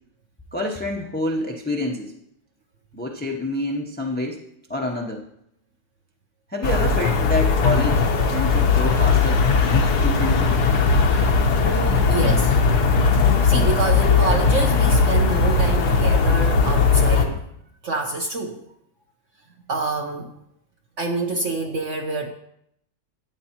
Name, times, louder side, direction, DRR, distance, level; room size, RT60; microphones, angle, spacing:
voice 1, 0.5-2.1 2.9-4.4 4.7-5.2 6.5-10.6, left 1 dB, 15° left, 0 dB, 0.4 m, -27 dB
sound 1, 6.6-17.2, left 4 dB, 85° left, 1.6 m, -18 dB
voice 2, 11.6-12.6 13.4-17.4 17.8-18.6 19.7-20.3 21.0-22.3, right 3 dB, 60° right, 2 dB, 1.0 m, -27 dB
12.5 x 8.9 x 2.9 m, 0.75 s
omnidirectional pair, 1.6 m